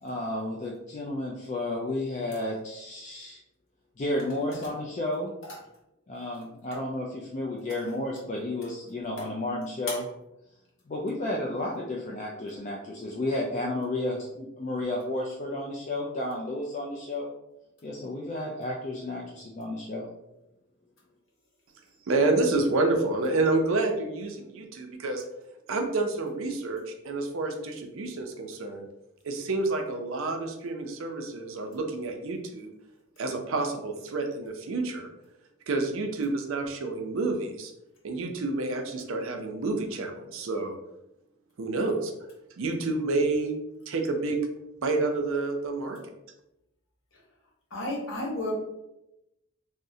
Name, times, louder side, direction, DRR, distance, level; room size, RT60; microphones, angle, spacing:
voice 1, 0.0-3.4 4.0-5.4 6.1-10.0 10.9-17.3 17.8-20.1, left 1 dB, 35° left, -3 dB, 0.3 m, -32 dB
voice 2, 22.1-25.2 25.7-28.9 29.2-32.7 33.2-35.1 35.7-37.7 38.0-40.8 41.6-42.1 42.6-43.6 43.9-44.4 44.8-46.0, right 3 dB, 70° right, 4 dB, 0.5 m, -29 dB
voice 3, 47.7-48.5, left 2 dB, 65° left, -4 dB, 1.0 m, -32 dB
3.5 x 2.0 x 2.7 m, 0.89 s
head